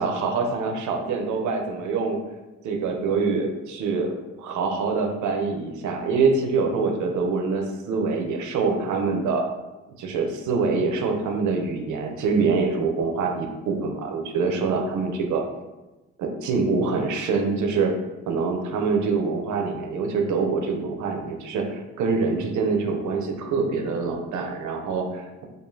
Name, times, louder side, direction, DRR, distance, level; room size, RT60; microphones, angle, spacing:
voice 1, 0.0-2.2 2.6-4.1 4.4-9.5 10.0-15.4 16.2-17.9 18.3-25.5, right 4 dB, 75° right, 3 dB, 0.7 m, -25 dB
4.7 x 2.6 x 2.7 m, 1.1 s
cardioid pair, 90°, 30 cm